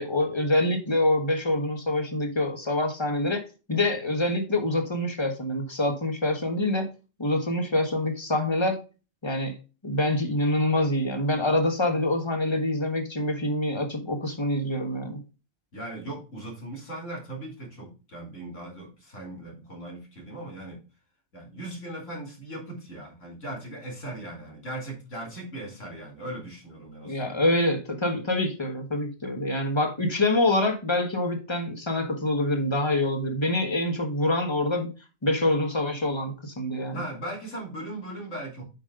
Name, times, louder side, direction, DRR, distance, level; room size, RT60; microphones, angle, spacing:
voice 1, 0.0-3.4 3.7-6.9 7.2-8.8 9.2-9.5 9.8-15.2 27.0-34.9 35.2-37.0, left 1 dB, 25° left, 5 dB, 1.4 m, -26 dB
voice 2, 15.7-20.8 21.3-27.4 36.9-38.6, right 1 dB, 85° left, -1 dB, 3.3 m, -38 dB
8.3 x 5.4 x 3.7 m, 0.32 s
omnidirectional pair, 1.2 m